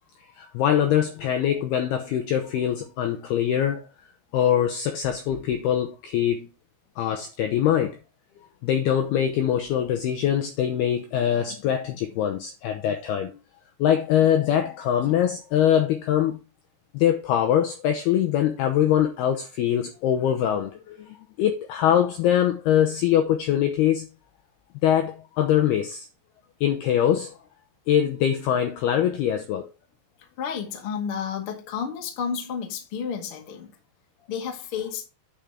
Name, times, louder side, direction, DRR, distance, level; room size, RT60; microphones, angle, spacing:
voice 1, 0.4-3.9 4.3-6.5 7.0-8.0 8.6-13.4 13.8-16.4 16.9-24.1 24.8-26.1 26.6-27.4 27.9-29.7, left 10 dB, 90° left, 2.2 m, -23 dB
voice 2, 30.4-33.7 34.3-35.0, left 7 dB, 65° left, 1.3 m, -31 dB
9.0 x 5.1 x 4.3 m
omnidirectional pair, 5.7 m